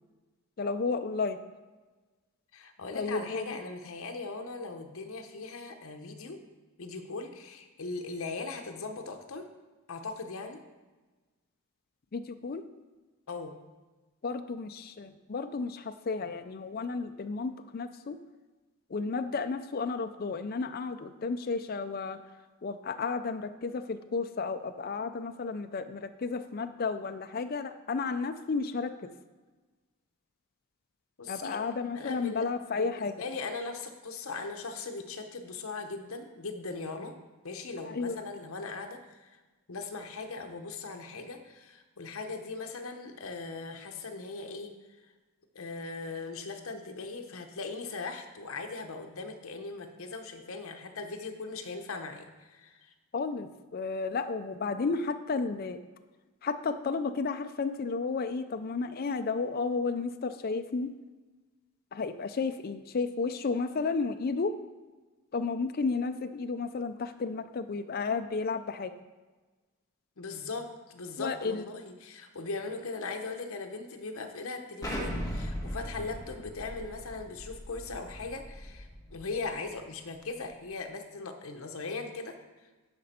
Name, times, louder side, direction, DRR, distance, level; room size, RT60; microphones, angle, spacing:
voice 1, 0.6-1.4 2.9-3.6 12.1-12.6 14.2-18.2 18.9-22.2 22.6-29.1 31.3-33.1 37.8-38.2 53.1-55.8 56.4-60.9 61.9-64.6 65.3-68.9 71.2-71.7, left 4 dB, 45° left, 8 dB, 0.4 m, -32 dB
voice 2, 2.5-6.4 6.8-9.5 9.9-10.6 13.3-13.5 31.2-31.6 31.9-37.1 37.4-39.4 39.7-44.7 45.5-52.9 70.2-82.4, left 3 dB, 70° left, 5 dB, 0.9 m, -39 dB
Explosion, 74.8-79.5, equal, 15° left, 1.4 m, -38 dB
12.0 x 5.1 x 4.3 m, 1.2 s
head